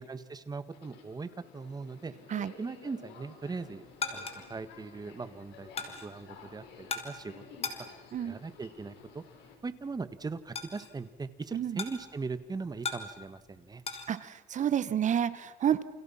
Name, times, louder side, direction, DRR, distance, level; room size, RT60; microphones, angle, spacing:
voice 1, 0.0-2.1 2.6-7.4 7.8-7.9 8.2-9.2 9.6-13.8, right 4 dB, 25° right, 12 dB, 1.7 m, -40 dB
Subway metro underground, 0.6-9.5, left 5 dB, 85° left, 5.7 m, -53 dB
sound 1, 3.6-14.1, left 4 dB, 35° left, 3.7 m, -42 dB
voice 2, 14.1-15.8, right 9 dB, 45° right, 15 dB, 1.3 m, -29 dB
29.0 x 28.5 x 5.8 m, 1.1 s
cardioid pair, 110°, 17 cm